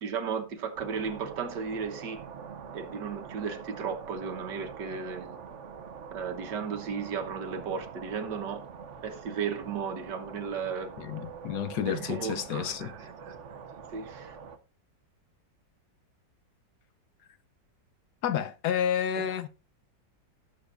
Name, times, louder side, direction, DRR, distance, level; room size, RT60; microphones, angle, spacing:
voice 1, 0.0-2.3 2.7-5.4 6.1-8.6 9.0-10.9 11.8-13.6 13.9-14.4 19.2-19.3, right 6 dB, 70° right, 1.8 m, -35 dB
sound 1, 0.8-14.6, right 6 dB, 50° right, 1.0 m, -44 dB
voice 2, 11.0-12.9 18.2-19.5, left 9 dB, 70° left, 1.2 m, -30 dB
18.5 x 7.2 x 2.5 m
omnidirectional pair, 1.9 m